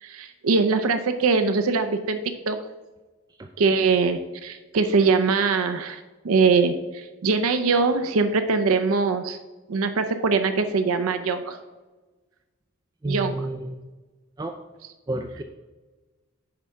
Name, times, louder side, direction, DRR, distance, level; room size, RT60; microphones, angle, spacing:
voice 1, 0.0-2.2 2.5-2.6 3.6-9.4 9.7-11.6 13.1-13.3, right 4 dB, 80° right, 8 dB, 0.5 m, -22 dB
voice 2, 13.0-13.7 14.4-14.6 15.1-15.4, right 2 dB, 20° right, 5 dB, 0.3 m, -30 dB
9.5 x 3.6 x 5.6 m, 1.2 s
head